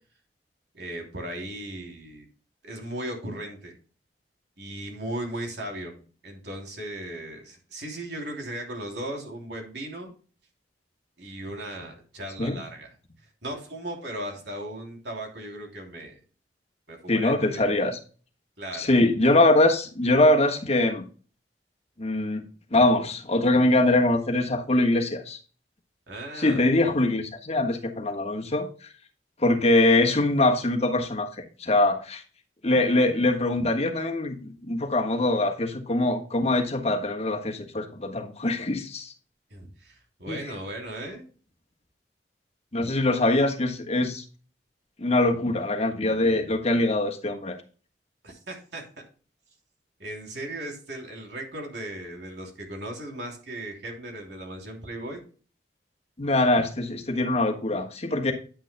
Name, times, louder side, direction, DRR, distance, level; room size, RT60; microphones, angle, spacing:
voice 1, 0.7-2.3 2.6-3.7 4.6-6.0 6.2-10.1 11.2-12.9 13.4-16.2 16.9-17.6 18.6-18.9 26.1-26.6 39.5-41.3 48.2-48.8 50.0-55.2, right 1 dB, 70° right, 3.1 m, -37 dB
voice 2, 17.1-18.0 18.7-21.0 22.0-22.4 22.7-25.4 26.4-28.7 29.4-32.2 32.6-39.1 40.3-40.5 42.7-44.2 45.0-47.6 56.2-58.3, left 2 dB, 40° left, 1.4 m, -23 dB
10.0 x 9.2 x 2.2 m
head